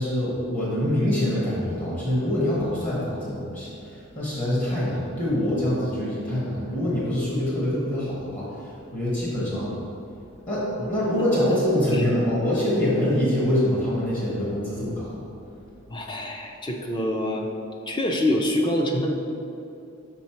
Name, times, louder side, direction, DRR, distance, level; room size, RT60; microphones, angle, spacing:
voice 1, 0.0-9.8 10.5-15.2, left 1 dB, 35° left, -6 dB, 1.3 m, -25 dB
voice 2, 15.9-17.5 17.9-19.1, left 1 dB, 20° left, 2 dB, 0.5 m, -25 dB
5.4 x 5.4 x 4.4 m, 2.7 s
head